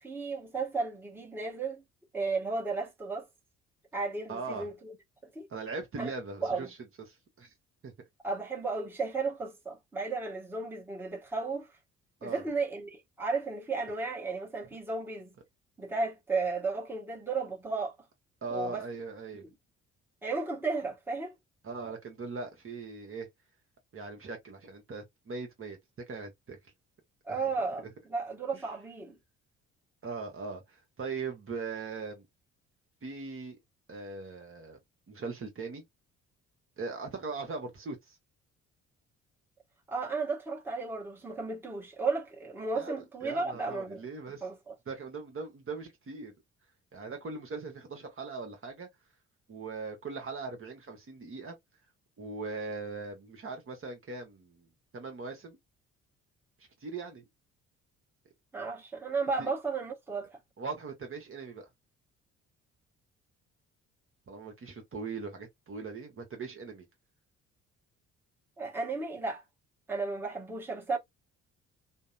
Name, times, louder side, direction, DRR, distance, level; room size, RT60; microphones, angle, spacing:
voice 1, 0.0-1.8 2.1-3.3 3.9-5.0 5.2-5.5 6.0-6.1 6.4-6.7 8.2-11.7 12.2-15.3 15.8-17.9 18.5-18.8 19.4-19.5 20.2-21.3 27.2-29.2 39.9-44.0 44.4-44.7 58.5-60.4 68.6-69.4 69.9-71.0, right 4 dB, 5° right, 1.0 m, -34 dB
voice 2, 4.3-4.7 5.5-6.8 7.1-7.5 7.8-7.9 12.2-12.4 18.4-19.5 21.6-23.3 23.9-25.8 26.1-26.6 27.3-27.5 27.8-27.9 28.5-28.6 30.0-32.2 33.0-33.6 33.9-34.8 35.1-35.8 36.8-38.2 42.7-44.4 44.9-46.3 46.9-48.9 49.5-51.6 52.2-54.7 54.9-55.6 56.8-57.2 59.4-59.5 60.6-61.6 64.3-66.9, right 4 dB, 35° right, 1.1 m, -40 dB
2.7 x 2.0 x 2.3 m
figure-of-eight pair, 45°, 37 cm